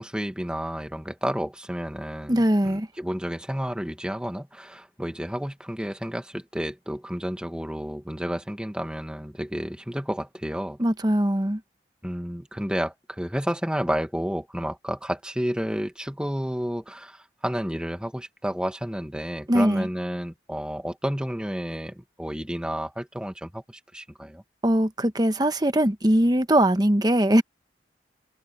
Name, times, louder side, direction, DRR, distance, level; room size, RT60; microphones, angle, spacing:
voice 1, 0.0-10.8 12.0-24.4, equal, 5° right, 1.7 m, -31 dB
voice 2, 2.3-2.9 10.8-11.6 19.5-19.9 24.6-27.4, right 1 dB, 20° right, 1.1 m, -21 dB
open air
head